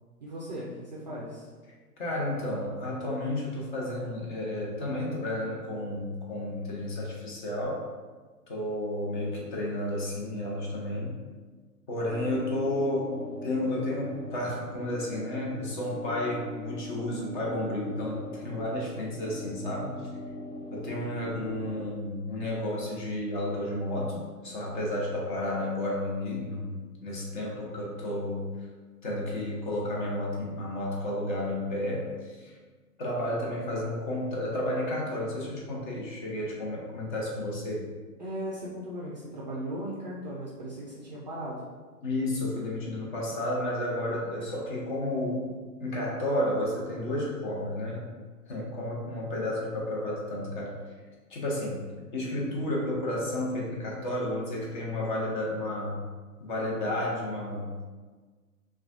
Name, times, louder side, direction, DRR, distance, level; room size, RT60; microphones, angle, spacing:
voice 1, 0.2-1.5 38.2-41.7, right 1 dB, 30° right, -5 dB, 0.4 m, -37 dB
voice 2, 2.0-7.9 8.5-11.2 11.9-20.1 20.7-28.7 29.0-32.5 33.0-37.9 42.0-45.5 45.8-48.1 48.5-50.8 51.3-56.0 56.4-57.8, left 1 dB, 30° left, -3 dB, 0.9 m, -32 dB
sound 1, 12.0-21.9, left 1 dB, 80° left, 0.9 m, -41 dB
5.6 x 2.3 x 2.5 m, 1.4 s
figure-of-eight pair, 120°, 47 cm